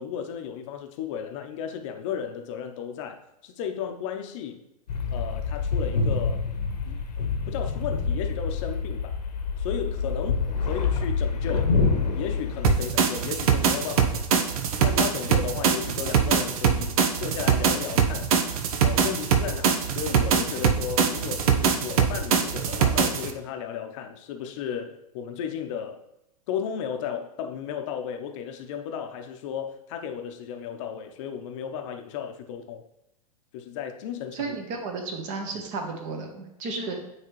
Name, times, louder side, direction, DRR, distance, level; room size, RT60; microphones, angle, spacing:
voice 1, 0.0-4.6 5.1-6.4 6.9-7.0 7.5-9.2 9.6-11.8 12.1-14.5 14.8-18.3 18.8-26.0 26.5-32.8 33.5-34.5, left 8 dB, 50° left, 5 dB, 0.8 m, -34 dB
sound 1, 4.9-12.8, left 4 dB, 75° left, 1.1 m, -26 dB
sound 2, 12.6-23.3, right 7 dB, 60° right, 0.7 m, -23 dB
voice 2, 34.3-37.0, right 4 dB, 40° right, 3 dB, 1.3 m, -33 dB
9.3 x 3.3 x 3.1 m, 0.85 s
hypercardioid pair, 110°, 21 cm